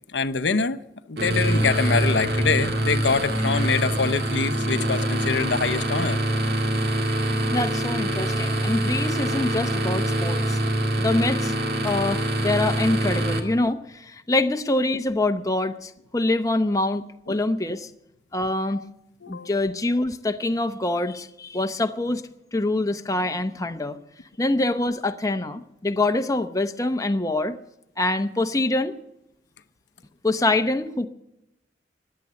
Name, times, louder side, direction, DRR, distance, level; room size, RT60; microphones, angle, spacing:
voice 1, 0.1-0.8 1.1-6.2 6.6-6.7 13.1-13.2 17.3-17.4 18.7-18.8 19.2-19.5, left 5 dB, 85° left, 11 dB, 0.7 m, -25 dB
sound 1, 1.2-13.4, right 1 dB, 60° right, 2.0 m, -24 dB
voice 2, 7.5-10.6 11.0-11.5 11.8-17.9 18.3-18.8 19.3-24.0 24.4-27.6 28.0-28.9 30.2-31.1, left 2 dB, 20° left, 7 dB, 0.8 m, -25 dB
16.0 x 10.5 x 6.5 m, 0.85 s
head